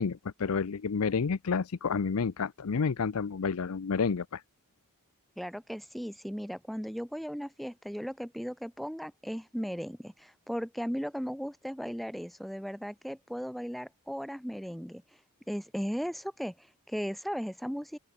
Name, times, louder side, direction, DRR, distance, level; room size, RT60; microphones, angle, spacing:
voice 1, 0.0-4.4, left 5 dB, 70° left, 0.6 m, -30 dB
voice 2, 5.4-15.0 15.5-18.0, equal, ahead, 3.0 m, -36 dB
open air
head